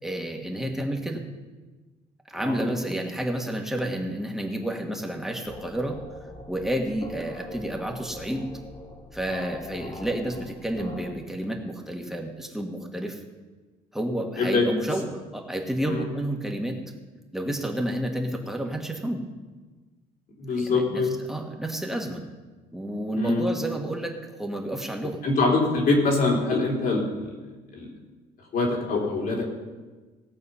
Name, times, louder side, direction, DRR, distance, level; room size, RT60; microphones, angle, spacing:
voice 1, 0.0-1.2 2.3-6.0 6.5-8.5 9.1-13.2 13.9-16.8 17.3-19.3 20.5-22.2 22.7-25.2, right 1 dB, ahead, 1 dB, 1.7 m, -30 dB
sound 1, 5.4-11.1, left 2 dB, 25° left, 1.1 m, -41 dB
voice 2, 20.4-21.2 23.1-23.5 25.2-27.4 27.7-27.9 28.5-29.4, left 3 dB, 60° left, -2 dB, 3.8 m, -24 dB
18.0 x 6.6 x 5.7 m, 1.3 s
cardioid pair, 110°, 17 cm